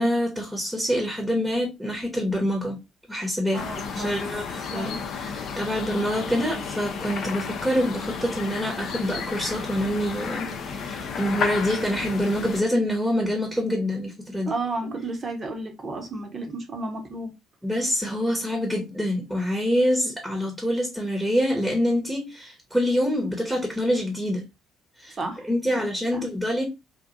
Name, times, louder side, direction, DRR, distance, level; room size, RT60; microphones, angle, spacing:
voice 1, 0.0-2.8 3.1-3.6 3.9-14.5 17.6-24.4 25.0-25.2 25.4-26.6, equal, 5° right, 0.9 m, -26 dB
sound 1, 3.5-12.6, left 5 dB, 50° left, 0.5 m, -32 dB
voice 2, 3.5-4.3 4.7-5.1 14.5-17.3 25.2-25.4 25.8-25.9 26.1-26.4, right 2 dB, 35° right, 0.9 m, -32 dB
2.9 x 2.5 x 2.5 m
figure-of-eight pair, 55°, 0 cm